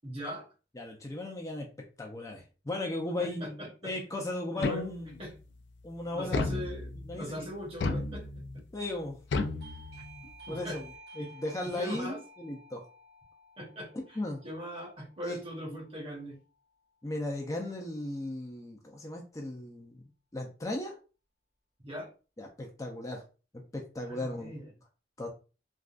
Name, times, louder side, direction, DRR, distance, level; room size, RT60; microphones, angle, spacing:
voice 1, 0.0-0.5 3.2-3.9 4.5-4.8 5.2-5.4 6.1-8.4 10.5-10.8 11.2-11.3 11.6-12.2 13.6-14.2 14.4-16.4 21.8-22.1 24.1-24.7, equal, 35° right, -1 dB, 1.0 m, -40 dB
voice 2, 0.8-1.7 2.0-3.6 3.8-5.2 5.8-6.5 7.1-7.4 8.7-9.2 10.5-10.9 11.2-12.8 13.9-14.4 15.2-15.8 17.0-20.0 20.3-21.0 22.4-23.2 23.5-24.5 25.2-25.3, left 1 dB, 20° left, 1 dB, 0.5 m, -36 dB
sound 1, 4.6-5.3 6.3-7.2 7.8-8.6 9.3-10.3, left 3 dB, 80° left, 0.4 m, -33 dB
Doorbell, 9.6-16.1, right 1 dB, 65° right, 1.0 m, -53 dB
3.5 x 2.3 x 2.4 m, 0.34 s
head